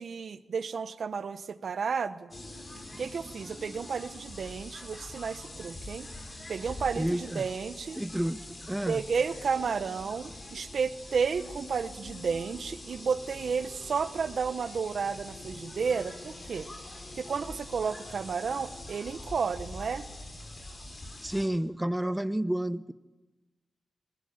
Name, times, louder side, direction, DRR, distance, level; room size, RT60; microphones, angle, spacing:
voice 1, 0.0-2.3 3.0-6.1 6.5-8.0 8.9-16.7 17.1-20.1, right 5 dB, 70° right, 12 dB, 1.1 m, -32 dB
sound 1, 2.3-21.5, left 1 dB, 40° left, 6.0 m, -44 dB
voice 2, 6.9-7.4 7.9-8.4 8.7-9.0 21.2-22.9, right 1 dB, 10° right, 14 dB, 0.8 m, -30 dB
21.5 x 21.0 x 8.9 m, 1.2 s
cardioid pair, 75°, 0 cm